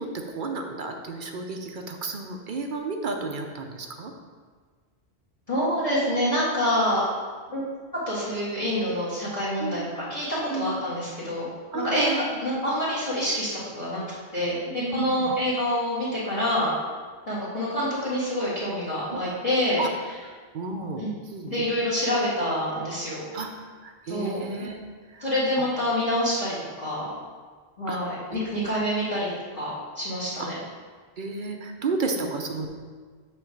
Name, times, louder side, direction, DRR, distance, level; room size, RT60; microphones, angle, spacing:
voice 1, 0.0-4.1 9.6-9.9 10.5-10.9 11.7-12.4 14.8-15.3 19.1-19.2 19.8-19.9 20.2-21.6 23.3-25.3 25.6-25.7 27.8-28.8 30.4-30.5 31.2-32.7, right 3 dB, 55° right, 3 dB, 0.8 m, -33 dB
voice 2, 5.5-7.0 7.5-7.6 8.1-11.5 11.7-12.1 12.4-13.5 13.8-14.0 14.3-16.7 17.3-19.8 21.0-21.1 21.5-23.3 24.1-24.7 25.2-27.1 27.8-30.6, equal, 30° left, -8 dB, 2.1 m, -27 dB
7.7 x 3.2 x 6.3 m, 1.5 s
omnidirectional pair, 1.1 m